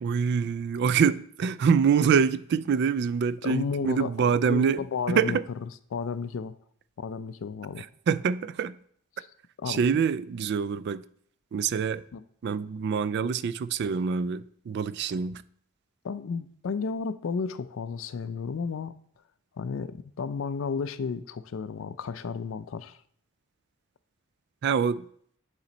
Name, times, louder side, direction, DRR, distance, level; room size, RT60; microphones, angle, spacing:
voice 1, 0.0-4.8 5.1-5.4 8.1-8.8 9.7-11.0 11.5-12.0 12.4-15.4 24.6-25.0, right 6 dB, 55° right, 0.3 m, -25 dB
voice 2, 3.4-6.5 7.0-7.9 9.2-9.3 9.6-9.8 12.1-12.2 16.0-18.9 19.6-23.0, left 5 dB, 65° left, 0.4 m, -33 dB
9.8 x 4.3 x 4.0 m
head